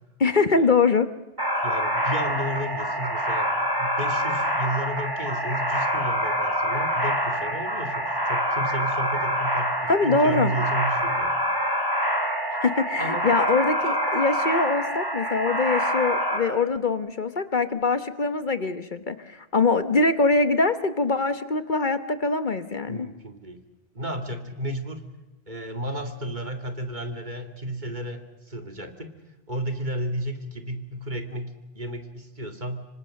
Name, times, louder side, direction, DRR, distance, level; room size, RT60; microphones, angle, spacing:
voice 1, 0.2-1.1 1.6-1.7 9.9-10.5 12.6-23.1, left 3 dB, 50° left, 11 dB, 1.2 m, -23 dB
sound 1, 1.4-16.4, equal, 20° right, 3.4 m, -26 dB
voice 2, 1.6-11.3 13.0-13.3 22.9-23.6 23.9-25.0 25.5-29.1 29.5-32.9, right 1 dB, 45° right, 6 dB, 2.5 m, -33 dB
26.0 x 24.5 x 6.5 m, 1.0 s
omnidirectional pair, 1.1 m